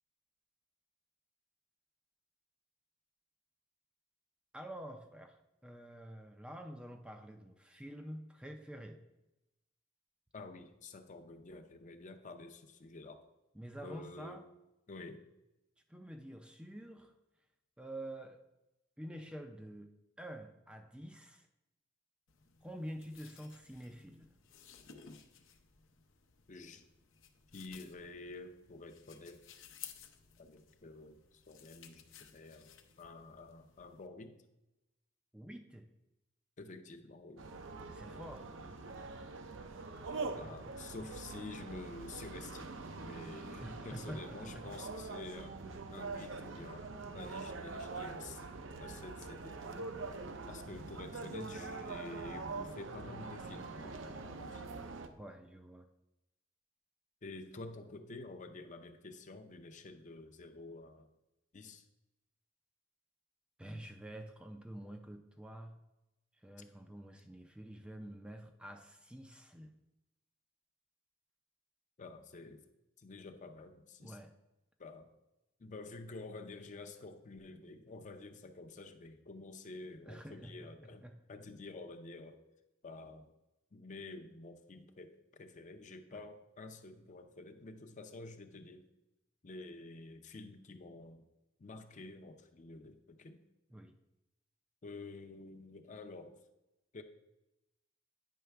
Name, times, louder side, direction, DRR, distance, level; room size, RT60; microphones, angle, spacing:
voice 1, 4.5-9.0 13.5-14.5 15.9-17.1 17.8-18.4 19.0-19.9 20.2-21.5 22.6-24.3 35.3-35.9 37.8-38.7 40.1-40.5 43.6-44.7 55.1-55.9 63.6-65.8 66.4-69.8 74.0-74.3 80.0-81.2 86.1-86.2 93.7-93.9, equal, 5° right, 5 dB, 0.4 m, -48 dB
voice 2, 10.3-13.2 13.8-14.4 14.9-15.2 26.5-26.8 27.5-29.4 30.4-34.4 36.6-37.5 40.4-45.6 45.9-46.9 47.1-48.5 48.8-50.0 50.5-54.6 57.2-61.1 61.5-61.9 72.0-72.6 73.0-74.2 74.8-75.1 75.6-82.4 82.8-83.3 83.7-88.8 89.4-91.2 91.6-93.4 94.8-96.4 96.9-97.0, left 3 dB, 40° left, 6 dB, 0.6 m, -49 dB
sound 1, 22.3-34.1, left 8 dB, 80° left, 0.7 m, -57 dB
sound 2, 37.4-55.1, right 3 dB, 70° right, 0.6 m, -44 dB
9.2 x 5.6 x 3.4 m, 0.94 s
head